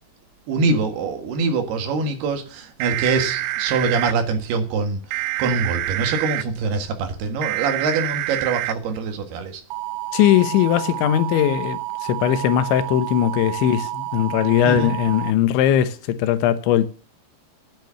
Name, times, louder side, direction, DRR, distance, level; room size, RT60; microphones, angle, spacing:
voice 1, 0.5-5.0 5.4-9.6 14.6-14.9, right 4 dB, 65° right, 3.4 m, -24 dB
sound 1, 2.8-4.1 5.1-6.4 7.4-8.7 9.7-15.3, right 16 dB, 85° right, 3.1 m, -28 dB
voice 2, 10.1-16.9, left 11 dB, 85° left, 3.4 m, -19 dB
10.0 x 9.2 x 6.9 m
omnidirectional pair, 5.2 m